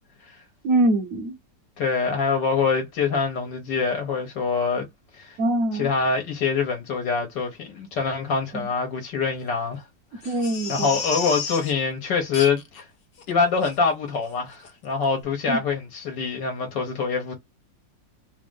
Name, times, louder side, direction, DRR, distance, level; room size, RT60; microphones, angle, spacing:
voice 1, 0.6-1.4 5.4-5.9 8.5-8.7 10.2-10.9 15.5-15.6, right 1 dB, 60° right, 1.0 m, -23 dB
voice 2, 1.8-4.9 5.2-5.4 5.7-9.8 10.2-10.3 10.7-12.8 13.3-17.3, left 5 dB, 70° left, 1.6 m, -25 dB
Crying sobbing, 10.2-11.7 12.3-12.8 13.2-13.3 13.6-13.8 14.2-14.4 14.6-14.7, left 6 dB, 55° left, 0.6 m, -32 dB
3.4 x 2.5 x 3.6 m
omnidirectional pair, 2.0 m